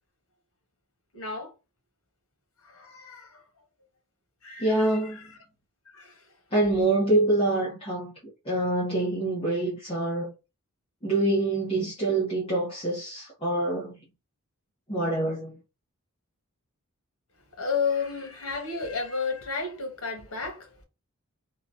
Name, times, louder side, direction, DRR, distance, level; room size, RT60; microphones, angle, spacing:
voice 1, 1.1-1.5 2.6-3.4 4.4-5.4 5.9-6.3 17.6-20.8, left 5 dB, 75° left, 1.3 m, -32 dB
voice 2, 4.6-5.2 6.5-8.1 8.4-10.3 11.0-14.0 14.9-15.6, right 2 dB, 25° left, 0.9 m, -25 dB
3.8 x 2.3 x 2.6 m
head